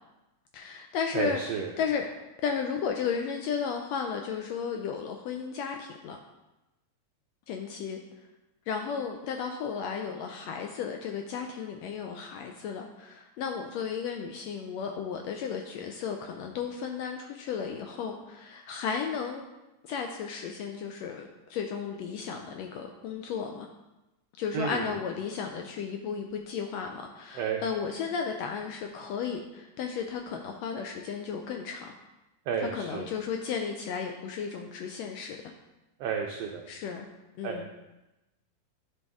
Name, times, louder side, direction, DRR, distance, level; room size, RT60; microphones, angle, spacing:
voice 1, 0.5-1.4 1.8-2.0 2.4-6.2 7.5-8.0 8.7-19.4 19.8-23.7 24.4-31.9 32.7-35.5 36.7-37.1 37.4-37.7, left 6 dB, 80° left, 3 dB, 1.5 m, -34 dB
voice 2, 1.1-1.7 24.5-24.9 27.3-27.6 32.5-33.1 36.0-36.6 37.4-37.6, right 6 dB, 80° right, 2 dB, 1.4 m, -31 dB
10.5 x 4.1 x 3.5 m, 1.0 s
omnidirectional pair, 3.4 m